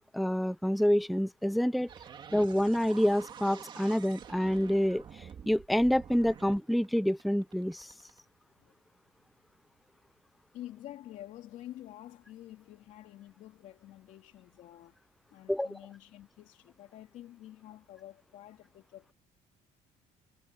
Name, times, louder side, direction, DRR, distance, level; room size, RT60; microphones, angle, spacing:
voice 1, 0.1-1.9 2.3-7.9 15.5-15.7, equal, ahead, 0.4 m, -27 dB
sound 1, 1.9-8.2, right 7 dB, 35° right, 2.5 m, -48 dB
voice 2, 10.5-19.1, left 13 dB, 65° left, 2.8 m, -49 dB
cardioid pair, 150°, 13 cm